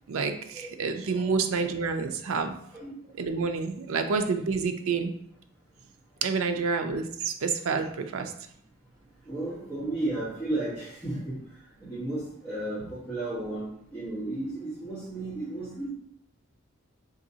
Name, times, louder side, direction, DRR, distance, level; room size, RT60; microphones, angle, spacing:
voice 1, 0.1-2.5 3.2-5.1 6.2-8.3, right 5 dB, 85° right, 6 dB, 0.4 m, -28 dB
voice 2, 9.3-11.4 11.8-15.9, right 2 dB, 10° left, -12 dB, 1.1 m, -33 dB
3.9 x 3.0 x 2.7 m, 0.69 s
head